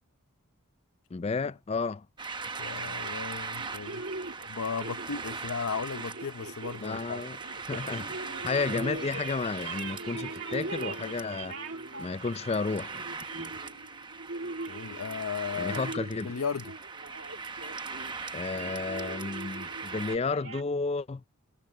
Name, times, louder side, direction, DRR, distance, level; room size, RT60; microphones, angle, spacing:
voice 1, 1.1-2.1 6.8-7.4 7.7-8.2 8.4-11.6 12.0-13.5 15.5-16.3 18.3-21.2, left 4 dB, 25° left, 0.3 m, -32 dB
sound 1, 2.2-20.2, right 4 dB, 20° right, 0.9 m, -40 dB
voice 2, 2.6-4.0 4.5-7.2 14.7-15.8 16.2-16.8, left 5 dB, 75° left, 0.7 m, -35 dB
sound 2, 3.6-20.6, right 3 dB, 55° right, 2.2 m, -41 dB
sound 3, 7.6-14.0, left 1 dB, 50° left, 6.6 m, -57 dB
head